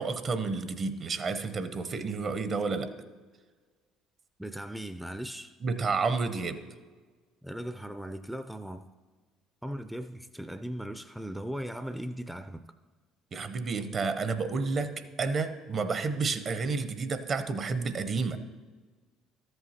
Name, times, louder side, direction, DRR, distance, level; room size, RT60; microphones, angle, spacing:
voice 1, 0.0-2.9 5.6-6.6 13.3-18.4, right 4 dB, 45° right, 11 dB, 0.7 m, -30 dB
voice 2, 4.4-5.5 7.4-8.8 9.6-12.6, equal, 5° right, 9 dB, 0.4 m, -38 dB
13.5 x 7.7 x 2.9 m, 1.4 s
hypercardioid pair, 65°, 0 cm